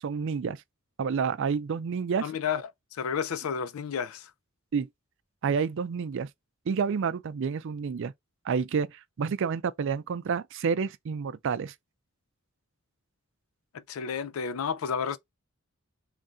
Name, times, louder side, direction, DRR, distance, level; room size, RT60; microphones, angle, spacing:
voice 1, 0.0-0.6 1.0-2.3 4.7-4.9 5.4-6.3 6.7-8.1 8.5-11.7, right 6 dB, 60° right, 0.4 m, -29 dB
voice 2, 2.2-2.6 2.9-4.3 13.9-15.2, left 6 dB, 80° left, 0.4 m, -31 dB
3.2 x 2.6 x 3.5 m
head